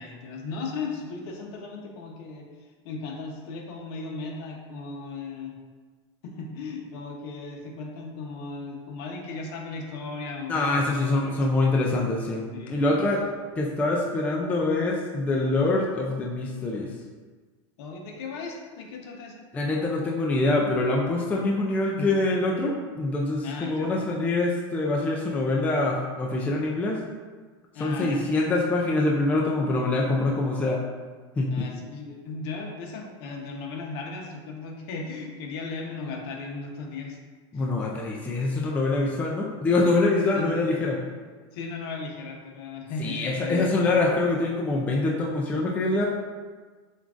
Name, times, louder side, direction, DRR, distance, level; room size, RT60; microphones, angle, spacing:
voice 1, 0.0-5.5 6.2-11.4 12.5-13.0 17.8-19.5 22.0-22.1 23.4-23.9 27.7-28.2 31.5-37.2 37.5-37.9 40.3-40.6 41.5-43.7, left 4 dB, 60° left, 1 dB, 0.9 m, -36 dB
voice 2, 10.5-13.2 13.6-16.9 19.5-27.0 27.8-30.8 31.4-31.7 37.5-41.0 43.0-46.1, left 2 dB, 10° left, -2 dB, 0.3 m, -25 dB
7.1 x 2.4 x 2.5 m, 1.4 s
supercardioid pair, 150°, 14 cm